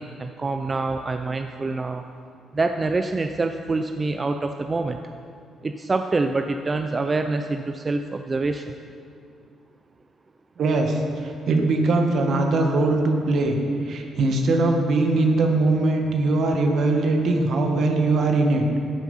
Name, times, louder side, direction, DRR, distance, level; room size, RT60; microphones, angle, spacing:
voice 1, 0.0-2.0 2.5-5.0 5.6-8.7, right 3 dB, 30° right, 6 dB, 0.5 m, -26 dB
voice 2, 10.6-13.6 13.9-18.6, right 2 dB, 65° right, 3 dB, 1.7 m, -21 dB
12.5 x 9.3 x 5.6 m, 2.3 s
cardioid pair, 90°, 0 cm